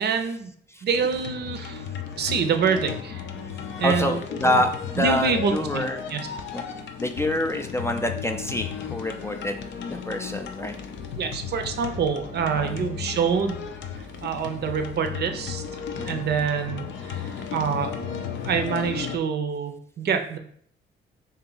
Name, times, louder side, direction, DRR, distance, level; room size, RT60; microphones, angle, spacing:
voice 1, 0.0-0.5 0.8-1.9 2.2-3.2 3.8-4.6 5.0-5.8 6.1-6.3 11.2-13.6 14.2-15.6 16.1-17.9 18.4-20.4, right 6 dB, 55° right, 6 dB, 0.5 m, -26 dB
sound 1, 0.9-19.2, left 7 dB, 70° left, 0.5 m, -35 dB
voice 2, 3.8-6.0 6.5-6.6 7.0-9.6 9.9-10.8 12.5-12.8 16.0-16.3, left 1 dB, 15° left, 5 dB, 0.3 m, -27 dB
3.4 x 2.8 x 3.8 m, 0.63 s
cardioid pair, 90°, 20 cm